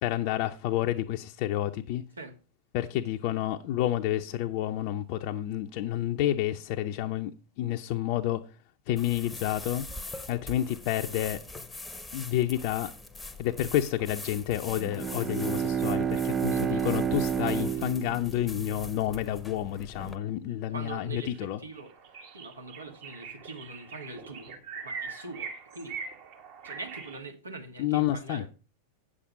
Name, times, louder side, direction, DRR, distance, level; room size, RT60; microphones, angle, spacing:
voice 1, 0.0-2.0 2.7-7.3 7.6-8.4 8.9-9.9 10.3-11.4 12.1-12.9 13.4-21.6 27.8-28.5, left 13 dB, 45° left, 0.5 m, -29 dB
sound 1, 9.0-20.2, left 2 dB, 10° left, 0.8 m, -43 dB
Bowed string instrument, 14.7-19.3, right 7 dB, 20° right, 0.4 m, -30 dB
voice 2, 16.5-16.9 20.7-21.9 22.3-24.6 24.8-26.0 26.6-28.5, right 3 dB, 75° right, 1.6 m, -43 dB
sound 2, 21.3-21.4 21.8-27.2, right 5 dB, 50° right, 1.8 m, -42 dB
8.5 x 7.5 x 5.0 m
figure-of-eight pair, 90°, 0 cm